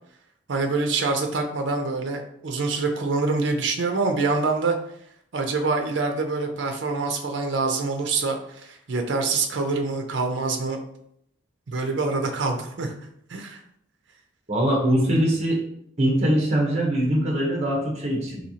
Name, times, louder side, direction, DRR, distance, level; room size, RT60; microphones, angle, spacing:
voice 1, 0.5-4.8 5.3-8.4 8.6-10.8 11.7-12.9 13.3-13.6, right 3 dB, 60° right, 4 dB, 0.5 m, -25 dB
voice 2, 14.5-15.6 16.0-18.4, equal, 35° right, -1 dB, 0.8 m, -22 dB
4.2 x 2.7 x 2.8 m, 0.73 s
head